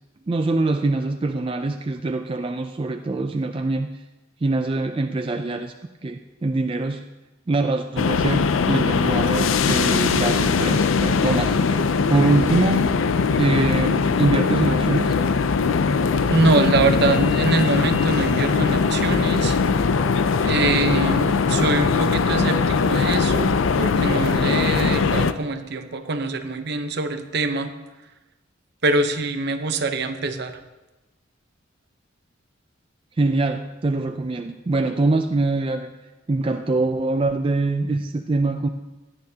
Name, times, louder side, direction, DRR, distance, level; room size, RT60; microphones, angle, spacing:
voice 1, 0.3-4.0 4.4-5.7 6.0-7.0 7.5-12.9 13.4-15.2 33.2-35.9 36.3-38.7, right 2 dB, 25° right, 6 dB, 0.4 m, -23 dB
sound 1, 8.0-25.3, left 5 dB, 85° left, 0.5 m, -20 dB
voice 2, 16.3-19.6 20.4-27.7 28.8-30.5, right 3 dB, 55° right, 8 dB, 0.8 m, -24 dB
17.0 x 11.5 x 2.8 m, 1.1 s
head